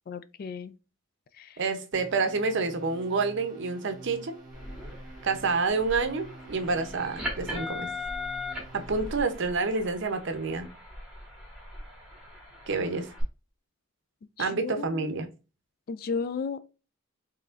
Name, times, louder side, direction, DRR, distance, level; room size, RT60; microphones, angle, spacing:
voice 1, 0.1-0.7 1.4-1.6 14.4-15.1 15.9-16.6, left 5 dB, 45° left, 0.3 m, -34 dB
voice 2, 1.6-4.3 5.2-7.9 8.7-10.7 12.7-13.1 14.4-15.3, right 4 dB, 60° right, 0.6 m, -28 dB
sound 1, 1.9-9.5, right 1 dB, 20° right, 1.6 m, -48 dB
sound 2, 4.5-13.2, left 2 dB, 5° right, 1.7 m, -40 dB
4.6 x 3.1 x 2.4 m
head